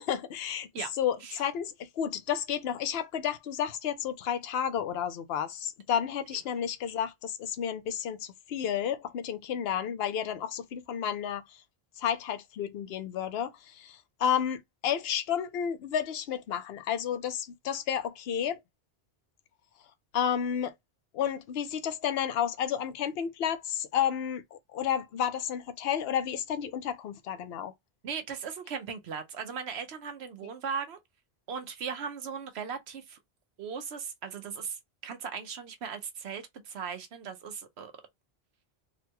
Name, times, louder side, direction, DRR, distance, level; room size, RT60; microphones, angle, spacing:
voice 1, 0.0-0.7 1.0-11.4 12.0-18.6 20.1-20.7 21.1-27.7, left 9 dB, 75° left, 0.9 m, -31 dB
voice 2, 28.0-31.0 31.5-33.2 33.6-37.9, right 6 dB, 85° right, 1.0 m, -38 dB
3.8 x 2.2 x 2.8 m
omnidirectional pair, 1.1 m